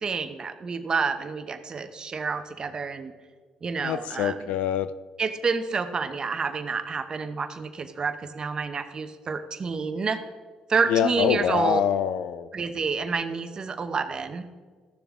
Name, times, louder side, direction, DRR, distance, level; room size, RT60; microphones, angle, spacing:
voice 1, 0.0-3.1 3.6-4.5 5.2-10.2 10.7-11.8 12.5-14.5, right 5 dB, 40° right, 9 dB, 0.9 m, -28 dB
voice 2, 3.8-4.9 10.9-12.5, left 9 dB, 80° left, 14 dB, 0.4 m, -25 dB
14.0 x 6.9 x 3.7 m, 1.6 s
cardioid pair, 85°, 2 cm